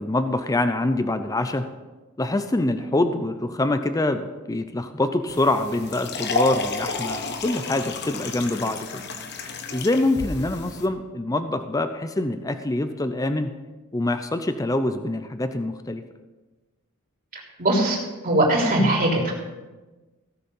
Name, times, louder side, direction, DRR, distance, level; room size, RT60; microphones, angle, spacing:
voice 1, 0.0-1.6 2.2-9.0 9.7-13.5 13.9-16.0, left 2 dB, 15° left, 9 dB, 0.5 m, -25 dB
sound 1, 5.3-10.9, left 3 dB, 50° left, 1.1 m, -31 dB
voice 2, 17.6-18.0 18.2-19.3, right 1 dB, 40° right, -3 dB, 3.6 m, -20 dB
17.0 x 6.8 x 5.5 m, 1.2 s
head